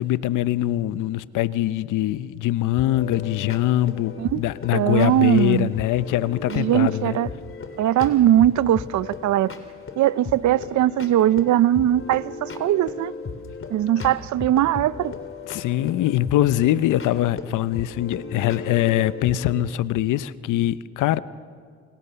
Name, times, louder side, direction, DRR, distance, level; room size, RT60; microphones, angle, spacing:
voice 1, 0.0-7.2 15.4-21.2, left 14 dB, 85° left, 0.9 m, -23 dB
sound 1, 2.8-19.6, left 4 dB, 45° left, 3.3 m, -37 dB
voice 2, 4.7-5.7 6.5-7.3 7.8-9.5 10.0-13.1 13.7-15.1, right 12 dB, 70° right, 0.7 m, -20 dB
28.5 x 28.0 x 7.0 m
cardioid pair, 90°, 30 cm